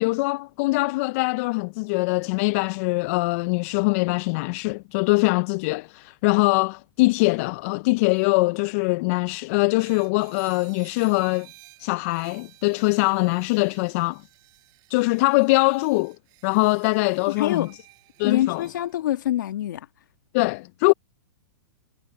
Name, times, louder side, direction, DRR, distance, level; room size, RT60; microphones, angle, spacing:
voice 1, 0.0-11.5 11.8-14.2 14.9-16.2 16.4-17.7 18.2-18.6 20.3-20.9, left 25 dB, 50° left, 0.5 m, -22 dB
Horror Harp, 9.8-19.0, right 24 dB, 40° right, 4.6 m, -53 dB
voice 2, 17.3-17.7 18.2-19.9, left 13 dB, 70° left, 1.5 m, -25 dB
hypercardioid pair, 125°, 10 cm